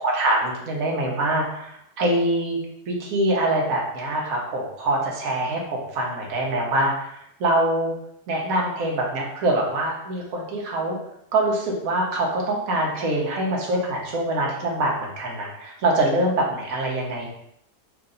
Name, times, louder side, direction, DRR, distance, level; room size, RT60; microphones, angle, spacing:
voice 1, 0.0-2.6 2.9-7.1 7.4-7.9 8.3-11.0 11.3-17.3, right 1 dB, 60° right, -1 dB, 1.4 m, -24 dB
4.7 x 2.6 x 3.9 m, 0.76 s
omnidirectional pair, 1.8 m